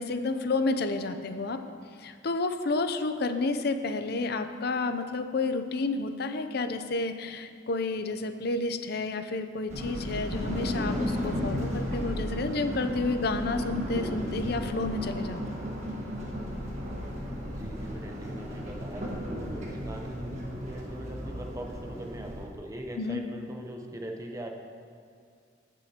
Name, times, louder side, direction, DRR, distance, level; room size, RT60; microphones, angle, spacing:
voice 1, 0.0-1.6 2.0-15.4 23.0-23.2, left 3 dB, 55° left, 9 dB, 0.5 m, -30 dB
sound 1, 9.7-22.5, equal, 40° right, 1.6 m, -34 dB
voice 2, 17.4-24.5, right 1 dB, 15° right, 2 dB, 0.8 m, -41 dB
17.0 x 6.3 x 2.9 m, 2.2 s
head